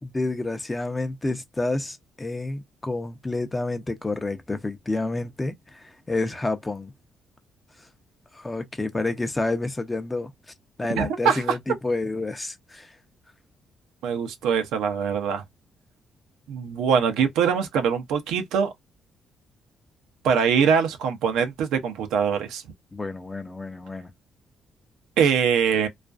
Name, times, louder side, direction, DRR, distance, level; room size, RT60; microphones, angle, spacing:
voice 1, 0.0-6.9 8.3-10.3 10.8-12.9 22.9-24.1, left 2 dB, 15° left, 0.5 m, -29 dB
voice 2, 11.0-11.4 14.0-15.4 16.5-18.7 20.2-22.6 25.2-25.9, right 7 dB, 90° right, 0.5 m, -23 dB
2.4 x 2.2 x 2.4 m
cardioid pair, 90°, 0 cm